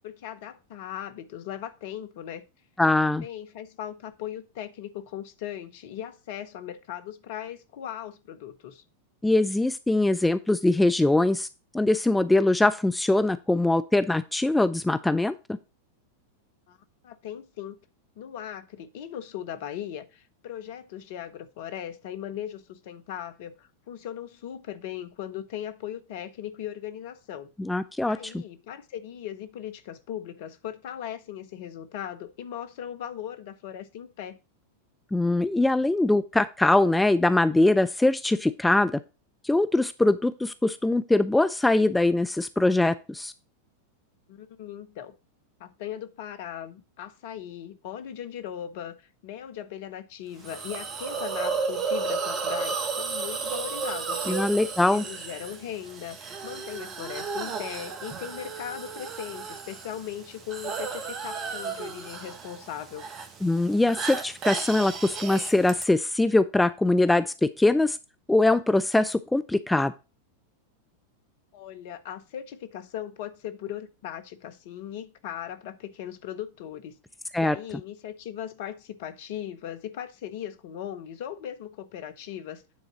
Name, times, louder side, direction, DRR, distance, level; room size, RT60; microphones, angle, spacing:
voice 1, 0.0-2.5 3.0-8.8 16.7-16.8 17.0-17.8 18.2-27.5 28.1-34.4 44.3-45.1 45.6-54.5 54.9-63.1 71.5-77.0 77.4-82.6, left 10 dB, 50° left, 0.8 m, -38 dB
voice 2, 2.8-3.3 9.2-11.5 11.7-15.3 27.6-28.4 35.1-39.0 39.4-43.3 54.3-55.0 63.4-68.0 68.3-69.9 77.3-77.6, left 2 dB, 5° left, 0.4 m, -22 dB
Hiss, 50.4-65.8, right 5 dB, 25° right, 1.2 m, -33 dB
9.3 x 3.9 x 5.9 m
figure-of-eight pair, 90°, 0 cm